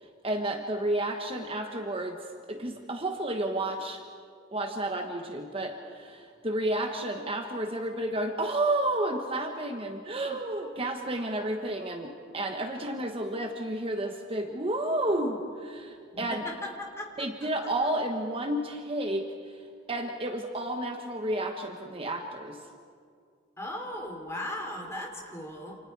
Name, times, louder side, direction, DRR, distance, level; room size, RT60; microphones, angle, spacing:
voice 1, 0.0-4.0 4.5-16.4 17.2-22.6, right 1 dB, 30° right, 4 dB, 1.3 m, -31 dB
voice 2, 16.1-17.3 23.6-25.8, left 1 dB, 15° left, 0 dB, 3.7 m, -37 dB
29.0 x 28.0 x 4.8 m, 2.2 s
head